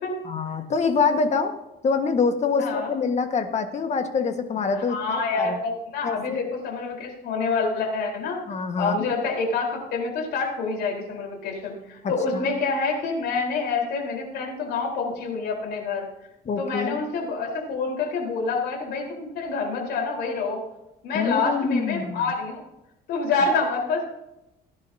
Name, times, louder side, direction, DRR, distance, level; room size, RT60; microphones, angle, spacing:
voice 1, 0.3-1.5 1.8-5.6 6.0-6.4 8.5-9.1 12.0-12.5 16.5-17.0 21.1-22.3, left 5 dB, 40° left, 6 dB, 1.7 m, -25 dB
voice 2, 2.6-2.9 4.7-8.4 8.8-16.1 16.6-20.6 21.0-22.6 23.1-24.0, left 4 dB, 75° left, 0 dB, 4.4 m, -27 dB
19.0 x 10.5 x 2.9 m, 0.88 s
cardioid pair, 110°, 17 cm